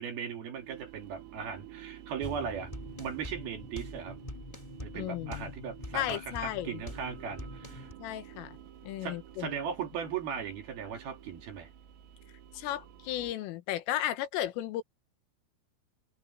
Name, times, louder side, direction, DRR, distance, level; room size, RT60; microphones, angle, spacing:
voice 1, 0.0-2.7 3.0-4.2 4.8-7.9 9.0-11.7, right 7 dB, 55° right, 3.6 m, -38 dB
sound 1, 0.5-13.3, right 11 dB, 90° right, 5.6 m, -51 dB
sound 2, 2.2-7.9, left 1 dB, 15° left, 1.3 m, -44 dB
voice 2, 4.9-5.5 5.9-6.8 8.0-8.6 8.8-9.6 12.5-14.8, left 13 dB, 80° left, 3.7 m, -34 dB
omnidirectional pair, 5.9 m